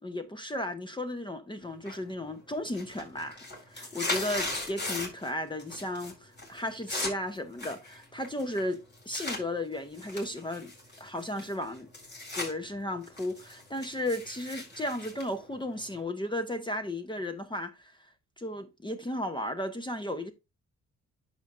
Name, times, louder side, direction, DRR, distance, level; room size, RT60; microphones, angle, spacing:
voice 1, 0.0-3.4 3.7-10.7 11.0-11.9 12.3-20.3, left 1 dB, 15° left, 0.8 m, -35 dB
sound 1, 1.9-2.3 2.6-5.3 5.6-6.1 6.4-9.4 9.9-12.5 12.9-16.0, left 2 dB, 35° left, 4.6 m, -37 dB
10.5 x 6.7 x 2.5 m
cardioid pair, 80°, 29 cm